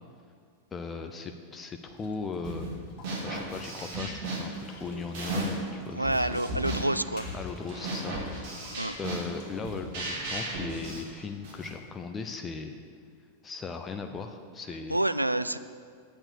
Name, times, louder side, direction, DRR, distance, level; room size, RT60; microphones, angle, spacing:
voice 1, 0.7-2.7 3.2-6.4 7.3-8.7 9.0-12.8 13.4-15.0, left 4 dB, 20° left, 6 dB, 0.7 m, -38 dB
sound 1, 1.8-11.1, left 2 dB, 35° left, 2.7 m, -51 dB
sound 2, 2.4-2.7 3.0-5.7 6.0-11.7, right 2 dB, 50° right, 2.8 m, -35 dB
voice 2, 5.9-7.3 8.7-9.0 14.9-15.6, right 1 dB, 85° right, 13 dB, 0.3 m, -28 dB
8.7 x 8.4 x 6.7 m, 2.2 s
figure-of-eight pair, 90°, 0 cm